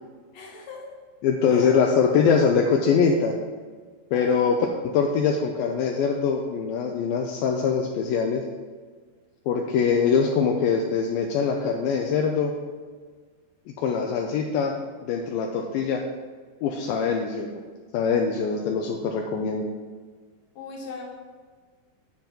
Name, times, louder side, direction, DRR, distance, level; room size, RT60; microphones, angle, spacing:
voice 1, 0.3-0.8 1.5-1.7 4.1-4.6 20.6-21.0, left 4 dB, 50° left, -1 dB, 2.5 m, -38 dB
voice 2, 1.2-3.3 4.1-4.6 4.9-8.4 9.5-12.5 13.8-14.8 15.0-16.0 16.6-17.5 17.9-19.7, left 6 dB, 80° left, 2 dB, 2.2 m, -23 dB
7.9 x 7.0 x 5.8 m, 1.5 s
omnidirectional pair, 4.7 m